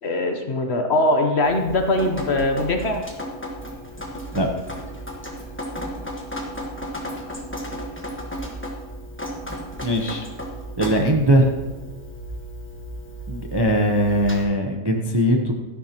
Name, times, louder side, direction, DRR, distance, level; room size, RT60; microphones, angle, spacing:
voice 1, 0.0-3.0 7.1-7.2, left 2 dB, 50° left, 4 dB, 1.1 m, -21 dB
Drip, 1.4-14.4, equal, 10° left, 1.2 m, -34 dB
voice 2, 9.8-10.2 10.8-11.5 13.3-15.5, equal, 25° right, 2 dB, 0.6 m, -20 dB
12.5 x 11.0 x 2.9 m, 1.2 s
omnidirectional pair, 1.6 m